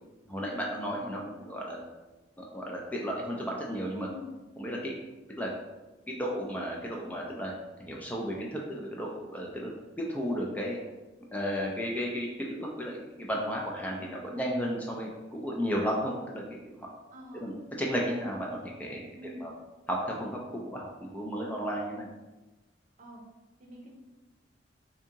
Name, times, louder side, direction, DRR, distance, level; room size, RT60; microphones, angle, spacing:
voice 1, 0.3-1.8 2.4-4.1 4.6-4.9 5.4-5.5 6.1-7.5 7.8-9.7 10.0-10.8 11.3-16.9 17.3-19.1 19.4-19.5 19.9-22.1, equal, 10° left, -2 dB, 0.4 m, -34 dB
voice 2, 4.0-4.3 13.7-14.1 17.1-17.5 19.1-19.5 23.0-23.2 23.6-23.9, left 2 dB, 45° right, 0 dB, 0.6 m, -46 dB
2.7 x 2.6 x 3.6 m, 1.1 s
head